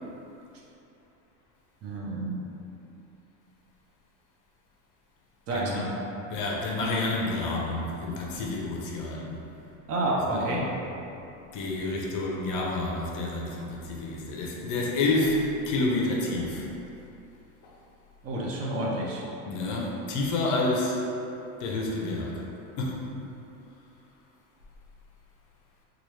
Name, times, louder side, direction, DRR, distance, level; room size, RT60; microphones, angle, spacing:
voice 1, 1.8-2.4 5.5-5.9 9.9-10.6 18.2-19.2, right 1 dB, 35° right, -3 dB, 0.5 m, -29 dB
voice 2, 5.5-5.9 6.3-9.4 10.1-10.7 11.5-16.7 17.6-17.7 19.5-21.0 21.6-22.4 22.8-23.0, left 2 dB, 50° left, -2 dB, 0.6 m, -29 dB
2.9 x 2.3 x 3.1 m, 2.8 s
supercardioid pair, 120°, 41 cm